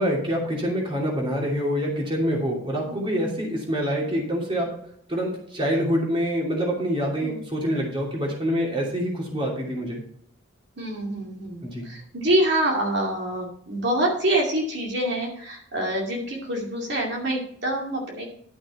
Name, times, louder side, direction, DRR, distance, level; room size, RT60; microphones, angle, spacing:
voice 1, 0.0-4.8 5.1-10.0 11.6-11.9, equal, 25° right, -2 dB, 2.9 m, -26 dB
voice 2, 2.8-3.3 7.2-7.4 10.8-18.2, right 1 dB, 55° right, -1 dB, 2.4 m, -26 dB
12.0 x 6.3 x 4.3 m, 0.64 s
head